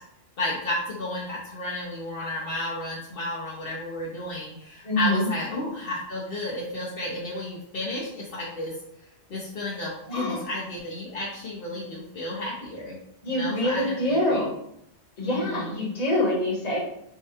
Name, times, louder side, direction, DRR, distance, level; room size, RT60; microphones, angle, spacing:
voice 1, 0.4-8.7 9.3-13.0 13.3-14.4 15.2-15.8, left 2 dB, 60° left, -5 dB, 0.9 m, -32 dB
voice 2, 4.8-5.3 10.1-10.4 13.2-14.6 15.2-16.8, left 1 dB, 35° left, -3 dB, 1.1 m, -25 dB
4.7 x 2.2 x 2.8 m, 0.77 s
omnidirectional pair, 1.1 m